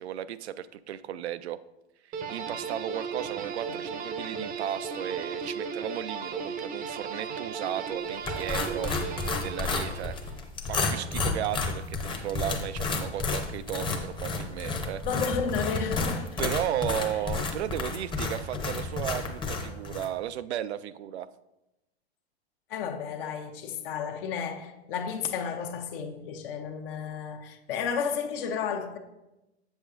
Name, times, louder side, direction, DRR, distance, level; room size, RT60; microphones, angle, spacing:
voice 1, 0.0-1.6 2.0-8.9 9.4-10.2 10.7-15.0 16.4-21.3, right 11 dB, 80° right, 0.5 m, -34 dB
sound 1, 2.1-10.5, right 5 dB, 25° right, 0.7 m, -36 dB
sound 2, 8.2-20.1, left 3 dB, 15° left, 0.8 m, -31 dB
voice 2, 15.0-16.3 22.7-29.0, left 6 dB, 55° left, 0.9 m, -32 dB
7.8 x 7.1 x 2.5 m
hypercardioid pair, 105°, 33 cm